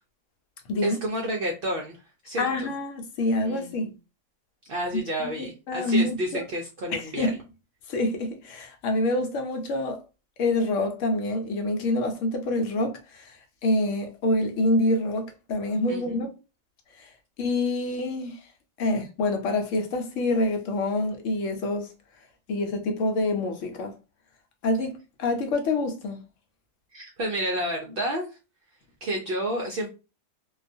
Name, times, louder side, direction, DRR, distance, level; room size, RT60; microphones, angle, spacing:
voice 1, 0.8-2.7 3.4-3.9 4.7-7.3 15.9-16.2 26.9-28.3 29.0-29.9, right 1 dB, 65° right, 0.5 m, -30 dB
voice 2, 2.4-3.9 4.9-6.4 6.9-7.4 7.9-10.0 10.4-13.3 13.6-16.3 17.0-17.1 17.4-18.4 18.8-21.9 22.5-23.9 24.6-26.2, left 2 dB, 70° left, 0.9 m, -26 dB
2.3 x 2.2 x 2.6 m
omnidirectional pair, 1.4 m